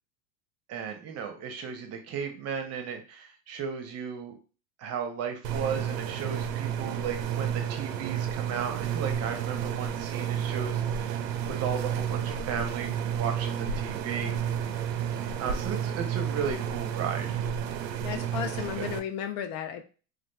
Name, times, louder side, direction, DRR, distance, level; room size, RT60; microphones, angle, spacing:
voice 1, 0.7-4.4 4.8-11.1 11.5-14.4 15.4-17.4 18.8-18.9, right 6 dB, 35° right, 5 dB, 0.7 m, -35 dB
sound 1, 5.4-19.0, right 9 dB, 85° right, 0.6 m, -31 dB
voice 2, 18.0-19.9, left 9 dB, 55° left, 7 dB, 0.6 m, -34 dB
3.1 x 2.3 x 2.2 m, 0.36 s
hypercardioid pair, 110°, 48 cm